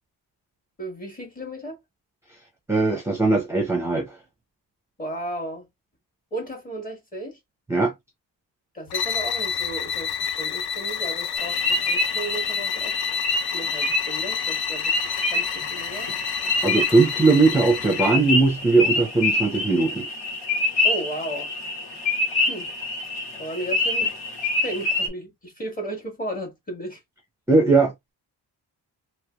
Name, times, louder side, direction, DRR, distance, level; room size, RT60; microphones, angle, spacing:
voice 1, 0.8-1.8 5.0-5.7 6.3-7.4 8.7-13.0 13.5-14.9 15.3-16.1 20.8-21.5 22.5-22.7 23.4-27.0, right 1 dB, 20° left, 1.6 m, -34 dB
voice 2, 2.7-4.1 7.7-7.9 16.6-20.1 27.5-27.9, right 3 dB, 5° right, 0.7 m, -19 dB
sound 1, 8.9-18.2, left 7 dB, 65° left, 0.5 m, -29 dB
sound 2, 11.4-25.1, left 2 dB, 85° left, 1.8 m, -27 dB
3.2 x 3.0 x 2.3 m
wide cardioid pair, 155°, 40 cm